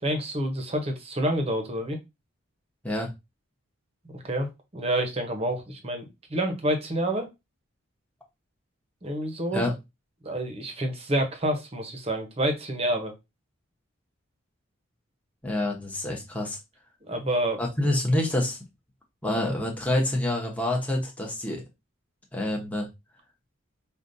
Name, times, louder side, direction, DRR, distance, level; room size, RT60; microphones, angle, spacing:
voice 1, 0.0-2.0 4.1-4.5 4.7-6.0 6.3-7.3 9.0-9.6 10.2-13.1 17.1-17.6, right 1 dB, 30° right, 4 dB, 0.8 m, -28 dB
voice 2, 15.4-16.6 17.6-18.6 19.2-21.6 22.3-22.9, left 1 dB, 5° left, -1 dB, 0.9 m, -27 dB
5.0 x 2.4 x 2.6 m, 0.23 s
head